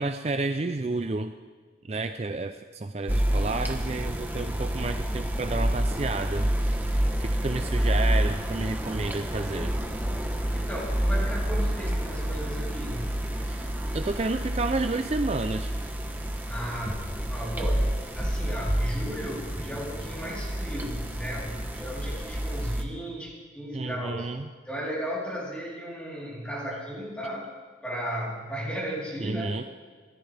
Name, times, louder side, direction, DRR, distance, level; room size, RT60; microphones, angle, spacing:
voice 1, 0.0-1.3 1.9-9.7 13.4-15.7 23.7-24.5 29.2-29.6, right 3 dB, 35° right, 8 dB, 0.4 m, -31 dB
sound 1, 3.1-22.8, right 1 dB, 10° right, 1.0 m, -29 dB
voice 2, 10.5-13.1 16.5-24.3 24.7-27.5 27.8-29.5, equal, 5° left, -6 dB, 3.8 m, -35 dB
24.5 x 14.0 x 3.4 m, 1.5 s
head